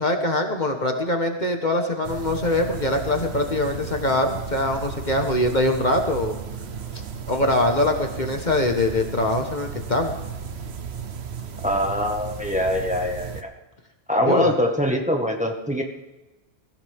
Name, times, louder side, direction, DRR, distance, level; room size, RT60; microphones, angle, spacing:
voice 1, 0.0-6.4 7.3-10.1 14.2-14.5, left 1 dB, 45° left, 4 dB, 1.5 m, -23 dB
sound 1, 2.0-13.4, right 7 dB, 75° right, 1.2 m, -35 dB
voice 2, 11.6-13.5 14.1-15.8, left 1 dB, 5° right, 1 dB, 1.7 m, -23 dB
23.0 x 15.5 x 3.6 m, 1.1 s
omnidirectional pair, 1.1 m